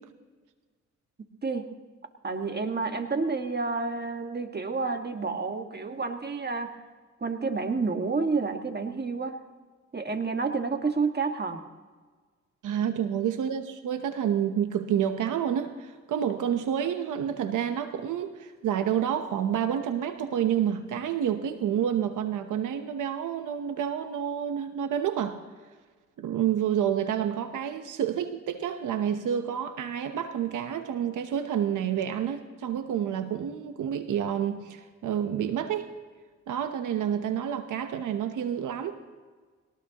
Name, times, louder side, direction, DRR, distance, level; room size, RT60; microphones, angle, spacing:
voice 1, 2.2-6.8 7.2-9.4 9.9-11.6, right 4 dB, 35° right, 5 dB, 1.7 m, -29 dB
voice 2, 12.6-25.4 26.2-35.9 36.5-39.0, right 9 dB, 85° right, 8 dB, 1.0 m, -29 dB
21.0 x 18.5 x 3.0 m, 1.4 s
cardioid pair, 65°, 30 cm